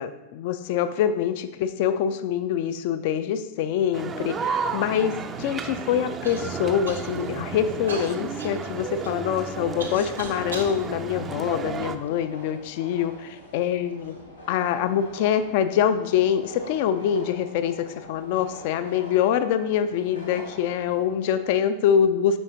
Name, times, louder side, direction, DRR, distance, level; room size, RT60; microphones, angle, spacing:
voice 1, 0.0-14.1 14.5-22.4, left 9 dB, 50° left, 11 dB, 0.3 m, -25 dB
sound 1, 3.9-12.0, right 5 dB, 25° right, 0.4 m, -32 dB
sound 2, 5.0-21.5, equal, 90° left, 1.4 m, -46 dB
Human voice / Cough, 6.2-6.4 6.8-7.3 7.9-10.7 11.4-12.3 13.0-13.1 13.8-14.2, right 3 dB, 75° right, 0.9 m, -39 dB
7.5 x 5.5 x 2.7 m, 1.0 s
figure-of-eight pair, 90°, 0 cm